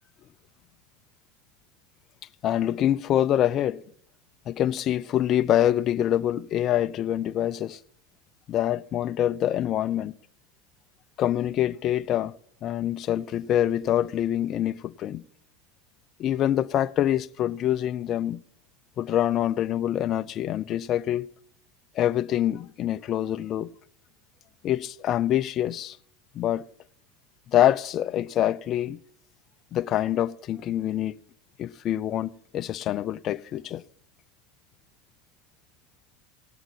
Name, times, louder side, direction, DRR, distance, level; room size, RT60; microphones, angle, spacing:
voice 1, 2.4-3.8 4.5-7.8 8.5-10.1 11.2-12.3 12.6-15.2 16.2-18.4 19.0-21.3 21.9-23.7 24.6-26.0 26.3-26.6 27.5-29.0 29.7-31.2 31.6-33.8, left 11 dB, 40° left, 0.6 m, -25 dB
19.0 x 17.0 x 4.4 m
hypercardioid pair, 80°, 0 cm